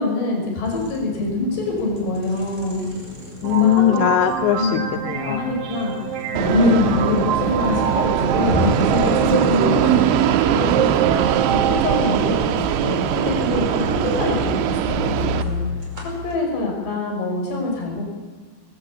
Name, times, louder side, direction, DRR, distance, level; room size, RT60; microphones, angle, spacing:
voice 1, 0.0-2.9 3.6-4.0 4.6-4.7 5.3-5.9 6.3-14.8 15.0-15.6 16.2-18.0, left 2 dB, 70° left, 1 dB, 7.6 m, -24 dB
sound 1, 0.6-16.4, left 2 dB, 15° right, 5.1 m, -35 dB
voice 2, 3.4-5.5 9.2-9.9, left 11 dB, 90° left, 9 dB, 3.1 m, -21 dB
sound 2, 3.4-12.2, right 9 dB, 60° right, 2.9 m, -25 dB
Fixed-wing aircraft airplane, 6.4-15.4, right 10 dB, 85° right, 3.2 m, -21 dB
20.5 x 19.0 x 8.6 m, 1.4 s
omnidirectional pair, 5.0 m